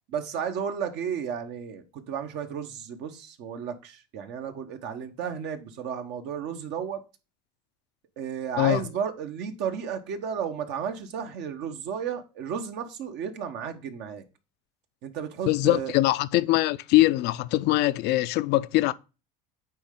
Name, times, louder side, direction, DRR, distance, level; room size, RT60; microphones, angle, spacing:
voice 1, 0.1-7.0 8.2-14.2 15.0-15.9, right 7 dB, 60° right, 1.1 m, -33 dB
voice 2, 15.5-18.9, left 17 dB, 55° left, 0.5 m, -22 dB
8.9 x 3.2 x 3.7 m
supercardioid pair, 95°, 20 cm